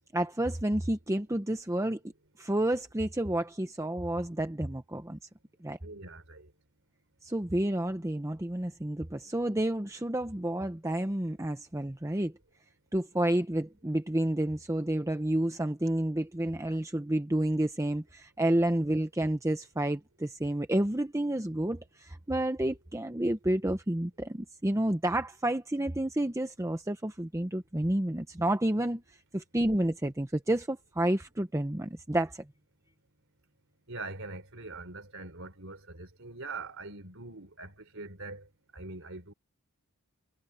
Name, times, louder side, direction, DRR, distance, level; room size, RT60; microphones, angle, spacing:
voice 1, 0.1-2.0 2.4-5.2 5.6-5.8 7.2-12.3 12.9-29.0 29.3-32.4, right 1 dB, 15° right, 0.8 m, -30 dB
voice 2, 5.8-6.5 33.9-38.5 38.7-39.3, right 3 dB, 60° right, 5.1 m, -43 dB
head